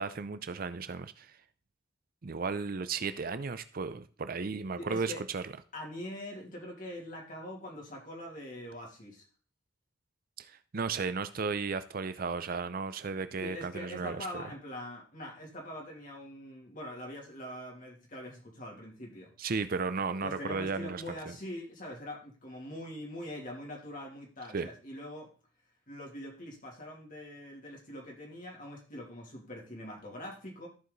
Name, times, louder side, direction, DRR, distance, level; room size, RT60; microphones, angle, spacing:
voice 1, 0.0-1.4 2.2-5.5 10.4-14.4 19.4-21.4 24.5-24.7, right 4 dB, 50° right, 12 dB, 0.6 m, -35 dB
voice 2, 4.8-5.2 5.7-9.2 13.4-19.3 20.2-25.3 25.9-30.7, left 1 dB, 45° left, -1 dB, 2.9 m, -43 dB
14.0 x 4.8 x 4.0 m, 0.37 s
head